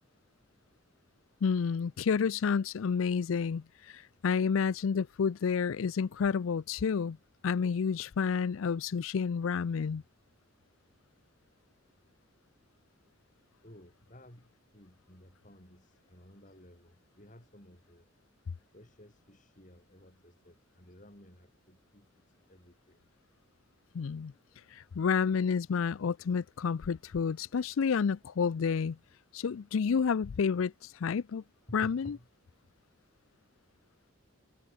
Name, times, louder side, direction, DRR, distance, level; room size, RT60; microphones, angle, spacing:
voice 1, 1.4-7.2 7.4-10.0 23.9-24.3 24.7-29.0 29.3-31.4 31.7-32.2, left 6 dB, 75° left, 0.4 m, -30 dB
voice 2, 13.6-18.1 18.7-23.0 31.7-32.5, equal, 40° left, 7.4 m, -55 dB
head